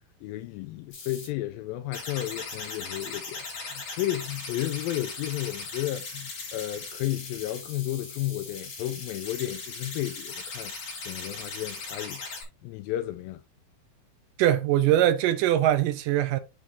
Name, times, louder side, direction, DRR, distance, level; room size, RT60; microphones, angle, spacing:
voice 1, 0.2-12.2 12.6-13.4, left 14 dB, 80° left, 2.2 m, -33 dB
sound 1, 0.9-1.3 1.9-12.4, left 4 dB, 45° left, 4.0 m, -39 dB
voice 2, 14.4-16.4, right 12 dB, 75° right, 2.2 m, -22 dB
10.5 x 4.8 x 2.7 m
omnidirectional pair, 4.3 m